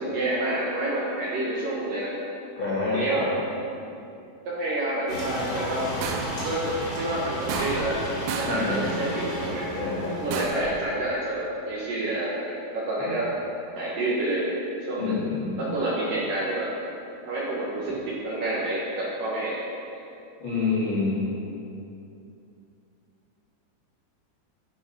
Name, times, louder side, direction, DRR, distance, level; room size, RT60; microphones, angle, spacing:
voice 1, 0.0-2.1 2.9-3.3 4.5-5.9 6.4-8.0 8.4-9.7 10.2-13.3 13.7-14.6 14.9-15.2 15.6-16.7 17.3-19.6 19.9-20.0, right 1 dB, 65° right, -6 dB, 2.4 m, -28 dB
voice 2, 2.6-3.3 8.4-9.1 9.8-10.2 13.0-13.1 15.0-15.7 20.4-21.3, left 3 dB, 75° left, -7 dB, 1.1 m, -28 dB
sound 1, 5.1-10.4, equal, 30° left, 3.1 m, -33 dB
sound 2, 6.0-6.5 7.5-8.0 8.3-8.7 10.3-10.8, right 5 dB, 85° right, 3.1 m, -32 dB
11.5 x 8.7 x 5.4 m, 2.7 s
omnidirectional pair, 5.6 m